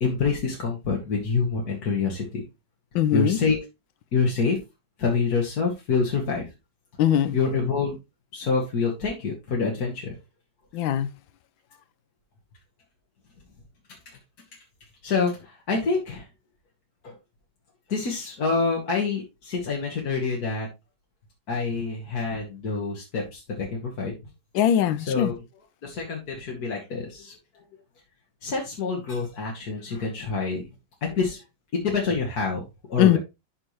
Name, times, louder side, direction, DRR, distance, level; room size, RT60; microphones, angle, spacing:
voice 1, 0.0-2.4 3.1-3.6 4.1-4.6 5.0-6.5 7.3-8.0 8.3-10.2 15.0-16.3 17.0-17.2 17.9-20.7 21.5-24.1 25.0-25.4 25.8-27.6 28.4-30.6 31.0-31.4 31.7-32.6 32.9-33.2, left 4 dB, 50° left, 1.9 m, -26 dB
voice 2, 2.9-3.4 7.0-7.4 10.7-11.1 24.5-25.3 33.0-33.2, left 11 dB, 80° left, 1.4 m, -21 dB
11.5 x 4.4 x 3.0 m
omnidirectional pair, 2.2 m